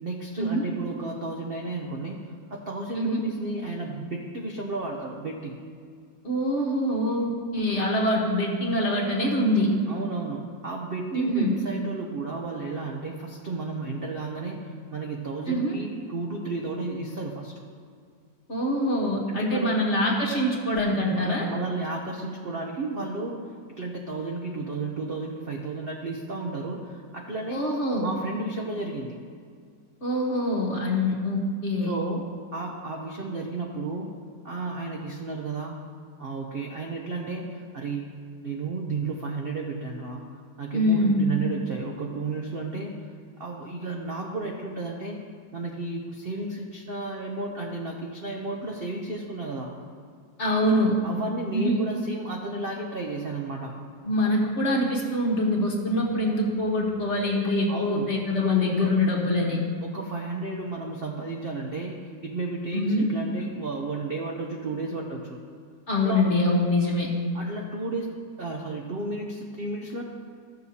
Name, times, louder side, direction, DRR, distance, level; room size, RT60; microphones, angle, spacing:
voice 1, 0.0-5.6 9.9-14.6 14.9-17.6 19.3-19.7 21.1-27.6 28.0-29.2 31.8-32.3 32.5-34.1 34.4-35.8 36.2-38.1 38.4-40.2 40.6-43.1 43.4-45.2 45.5-49.8 51.0-53.8 57.7-58.9 59.8-62.0 62.2-65.4 65.9-66.2 67.3-70.0, right 3 dB, 55° right, 0 dB, 0.6 m, -33 dB
voice 2, 6.2-9.7 11.1-11.5 15.5-15.7 18.5-21.5 27.5-28.1 30.0-32.0 40.7-41.3 50.4-50.9 51.5-51.8 54.0-59.6 62.7-63.1 65.9-67.1, left 1 dB, 45° left, -2 dB, 1.4 m, -24 dB
15.0 x 6.6 x 2.8 m, 2.1 s
omnidirectional pair, 1.9 m